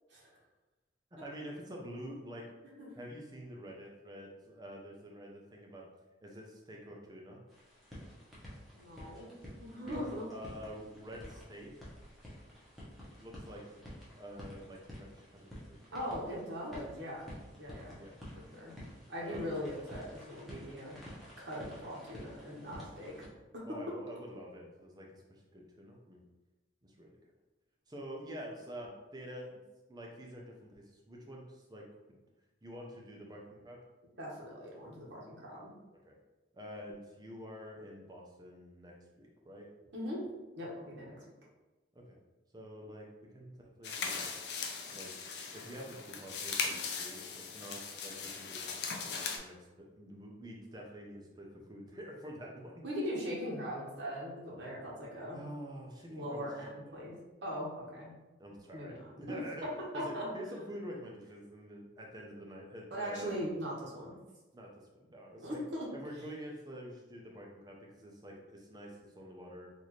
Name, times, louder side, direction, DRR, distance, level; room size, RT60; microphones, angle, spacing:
voice 1, 1.2-2.5 3.0-5.8 6.2-7.4 9.9-11.7 13.2-13.6 14.2-15.9 18.0-18.1 19.2-19.6 23.6-26.2 26.8-27.2 27.9-29.6 29.9-31.8 32.6-33.8 36.0-36.2 36.5-39.7 41.9-42.2 42.5-43.1 43.3-43.5 43.8-44.4 44.9-45.1 45.5-48.8 49.4-52.8 55.3-56.5 57.0-57.1 58.4-59.7 59.9-63.4 64.5-65.6 65.9-69.7, equal, 20° right, -1 dB, 0.6 m, -47 dB
sound 1, 7.5-23.3, equal, ahead, 0.9 m, -51 dB
voice 2, 8.7-9.3 9.6-10.3 15.9-17.3 17.6-17.9 18.3-18.8 19.1-21.0 21.4-23.1 23.5-23.6 34.2-35.7 39.9-40.2 40.6-41.2 52.8-55.4 56.1-57.1 57.4-58.1 58.7-59.4 59.9-60.3 62.9-64.2 65.4-65.8, equal, 75° right, -5 dB, 1.1 m, -40 dB
sound 2, 43.8-49.4, left 5 dB, 60° left, 0.5 m, -39 dB
4.1 x 2.6 x 3.1 m, 1.1 s
head